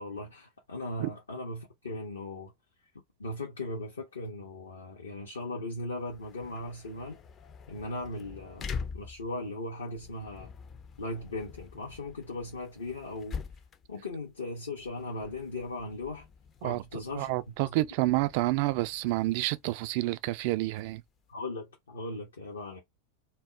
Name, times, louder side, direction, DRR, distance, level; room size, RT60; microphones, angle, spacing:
voice 1, 0.0-2.5 3.2-7.2 7.7-10.5 11.0-13.4 13.9-16.3 16.6-17.3 17.7-17.8 21.3-22.8, left 2 dB, 80° left, 0.6 m, -38 dB
sound 1, 5.9-21.3, left 5 dB, 30° left, 0.4 m, -46 dB
voice 2, 16.6-21.0, right 18 dB, 55° right, 0.3 m, -29 dB
2.1 x 2.0 x 3.6 m
figure-of-eight pair, 90°, 0 cm